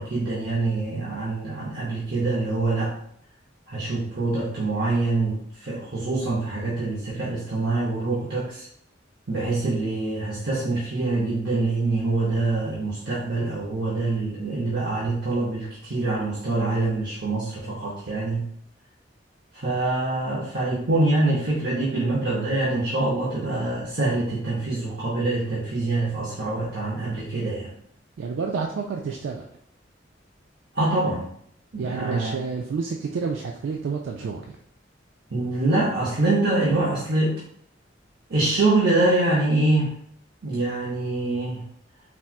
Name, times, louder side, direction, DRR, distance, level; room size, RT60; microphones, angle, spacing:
voice 1, 0.0-2.9 3.7-8.7 9.3-18.5 19.5-27.7 30.7-31.3 31.7-32.3 35.3-37.4 38.3-39.9 40.4-41.6, right 2 dB, 60° right, -7 dB, 0.8 m, -25 dB
voice 2, 28.2-29.5 31.8-34.6, right 5 dB, 85° right, 1 dB, 0.3 m, -29 dB
4.1 x 2.2 x 2.4 m, 0.67 s
head